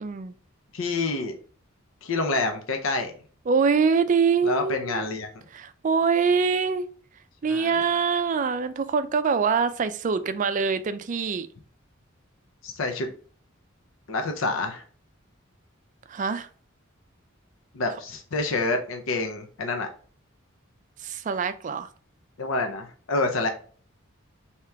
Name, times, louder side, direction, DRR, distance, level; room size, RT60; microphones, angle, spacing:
voice 1, 0.0-0.3 3.5-5.1 5.5-6.9 7.4-11.5 16.1-16.5 21.0-21.9, right 5 dB, 40° right, 11 dB, 0.4 m, -24 dB
voice 2, 0.7-1.3 2.0-3.1 4.4-5.3 7.5-7.8 12.6-13.1 14.1-14.8 17.7-19.9 22.4-23.5, left 2 dB, 80° left, 5 dB, 0.6 m, -27 dB
3.3 x 2.9 x 4.6 m, 0.43 s
head